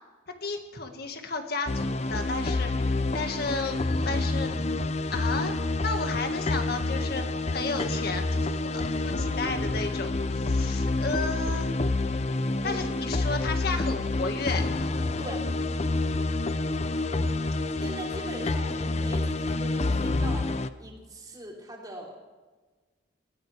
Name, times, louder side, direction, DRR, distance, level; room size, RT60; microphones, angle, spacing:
voice 1, 0.4-3.8 4.0-4.6 5.1-7.2 7.5-10.1 10.4-11.7 12.6-14.6, left 3 dB, 55° left, 5 dB, 1.8 m, -33 dB
sound 1, 1.7-20.7, left 2 dB, 35° left, 0.6 m, -28 dB
voice 2, 12.6-12.9 15.2-15.5 17.8-20.5 20.8-22.2, right 1 dB, 20° right, -2 dB, 3.6 m, -41 dB
20.0 x 15.5 x 3.5 m, 1.3 s
head